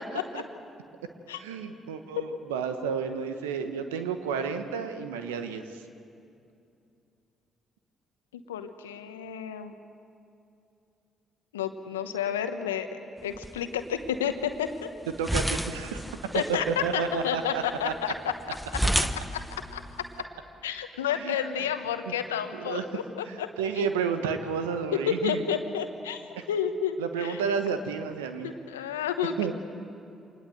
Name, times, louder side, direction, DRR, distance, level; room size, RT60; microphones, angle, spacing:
voice 1, 1.4-5.6 15.2-16.0 16.7-17.9 21.2-21.3 22.5-22.8 23.3-25.4 27.0-28.5 29.4-29.5, right 6 dB, 85° right, 8 dB, 1.2 m, -31 dB
voice 2, 8.3-9.7 11.5-14.7 16.3-18.6 19.3-19.4 19.7-19.8 20.6-23.5 24.9-27.4 28.4-29.5, left 8 dB, 90° left, 9 dB, 1.0 m, -31 dB
sound 1, 13.2-20.2, equal, ahead, 1.2 m, -33 dB
25.5 x 20.0 x 7.9 m, 2.6 s
hypercardioid pair, 45°, 0 cm